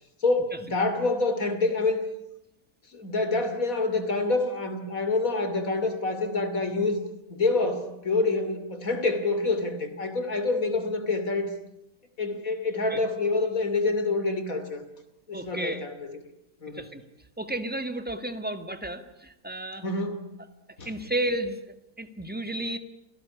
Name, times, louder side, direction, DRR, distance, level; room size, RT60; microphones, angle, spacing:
voice 1, 0.2-2.0 2.9-7.0 7.3-11.5 12.2-14.8 15.3-16.1 16.6-16.8 19.8-20.3 20.8-20.9, left 3 dB, 55° left, 9 dB, 3.3 m, -27 dB
voice 2, 15.3-15.9 16.7-17.0 17.4-19.8 20.8-22.8, right 1 dB, 5° right, 9 dB, 1.8 m, -32 dB
28.5 x 18.0 x 9.8 m, 0.84 s
omnidirectional pair, 1.8 m